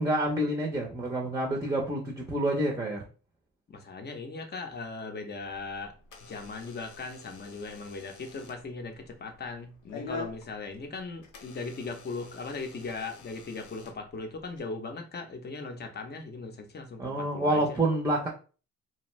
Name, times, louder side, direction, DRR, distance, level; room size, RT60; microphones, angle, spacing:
voice 1, 0.0-3.0 17.0-18.3, right 1 dB, 10° right, 0 dB, 0.6 m, -28 dB
voice 2, 3.7-5.9 6.2-17.8, left 3 dB, 35° left, 5 dB, 0.7 m, -39 dB
Door / Alarm, 5.4-14.6, left 4 dB, 85° left, 0.7 m, -47 dB
2.6 x 2.2 x 3.0 m, 0.36 s
cardioid pair, 90°, 30 cm